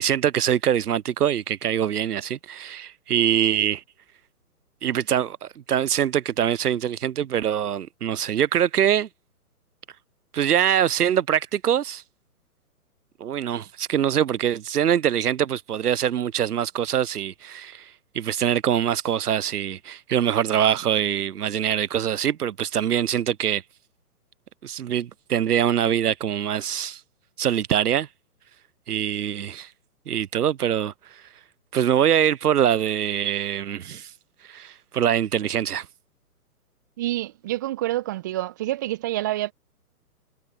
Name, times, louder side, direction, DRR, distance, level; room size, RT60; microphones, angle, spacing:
voice 1, 0.0-3.8 4.8-9.1 10.3-12.0 13.2-23.6 24.6-27.0 27.4-28.1 28.9-29.7 30.1-30.9 31.7-34.1 34.5-35.9, right 9 dB, 80° right, 0.6 m, -23 dB
voice 2, 37.0-39.5, right 15 dB, 15° right, 0.6 m, -27 dB
figure-of-eight pair, 130°, 46 cm